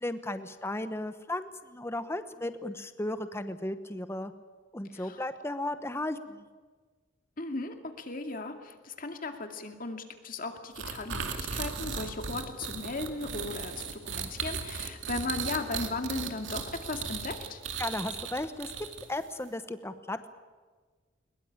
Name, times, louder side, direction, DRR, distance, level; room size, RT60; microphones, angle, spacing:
voice 1, 0.0-4.3 4.7-6.5 17.8-20.3, left 1 dB, 15° left, 11 dB, 1.0 m, -35 dB
voice 2, 4.9-5.2 7.4-17.6, left 3 dB, 45° left, 6 dB, 2.2 m, -37 dB
sound 1, 10.8-19.3, right 6 dB, 80° right, 2.4 m, -36 dB
21.5 x 21.5 x 8.7 m, 1.4 s
head